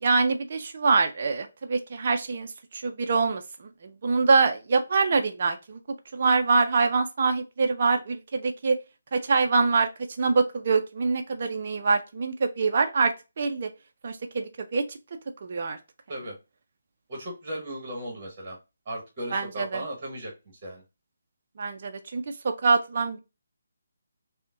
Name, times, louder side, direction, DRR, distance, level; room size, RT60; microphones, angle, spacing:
voice 1, 0.0-3.4 3.8-5.8 6.1-8.8 9.1-9.9 10.2-13.7 14.0-14.8 15.4-15.8 19.3-19.8 21.6-23.2, right 4 dB, 45° right, 0.4 m, -24 dB
voice 2, 17.1-18.6 18.8-20.3 20.6-20.8, right 1 dB, 25° right, 1.2 m, -36 dB
5.0 x 2.1 x 2.4 m
figure-of-eight pair, 150°, 0 cm